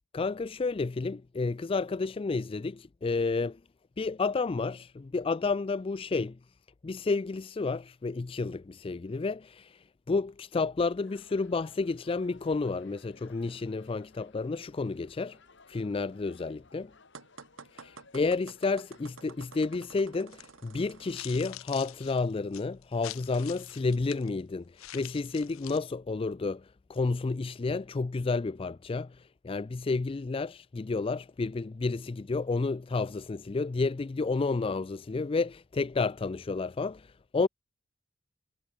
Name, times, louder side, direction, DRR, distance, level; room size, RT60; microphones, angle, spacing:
voice 1, 0.1-3.6 4.0-6.4 6.8-15.4 15.7-16.9 17.7-37.5, left 3 dB, 25° left, 0.4 m, -31 dB
sound 1, 11.0-20.8, left 4 dB, 60° left, 3.4 m, -60 dB
sound 2, 17.1-21.3, right 5 dB, 70° right, 1.4 m, -51 dB
sound 3, 20.3-20.5 21.0-24.3 24.8-25.8, left 15 dB, 80° left, 0.6 m, -45 dB
head